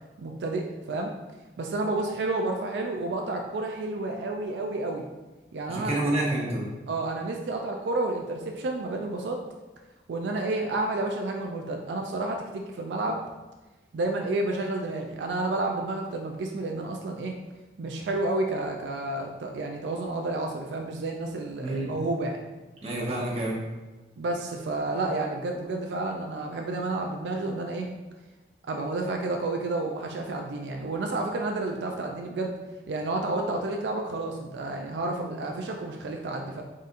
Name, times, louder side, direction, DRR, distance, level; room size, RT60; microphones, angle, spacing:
voice 1, 0.2-1.1 1.6-5.0 5.5-6.0 6.9-9.4 10.1-13.2 13.9-17.4 17.8-22.4 24.2-27.9 28.7-32.5 32.9-36.6, right 2 dB, 80° right, 2 dB, 0.4 m, -30 dB
voice 2, 5.7-6.7 21.6-22.0 22.8-23.6, right 1 dB, 35° right, -3 dB, 0.8 m, -28 dB
4.1 x 3.7 x 2.5 m, 1.2 s
head